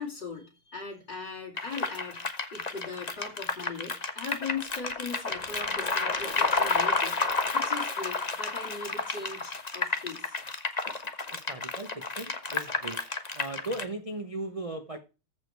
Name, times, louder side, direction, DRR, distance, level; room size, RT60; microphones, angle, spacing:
voice 1, 0.0-10.4, left 4 dB, 55° left, 3.5 m, -39 dB
sound 1, 1.6-13.8, left 3 dB, 25° left, 0.9 m, -31 dB
voice 2, 11.3-13.0 13.3-15.0, right 2 dB, 35° right, 0.5 m, -37 dB
14.5 x 5.1 x 4.6 m
omnidirectional pair, 2.3 m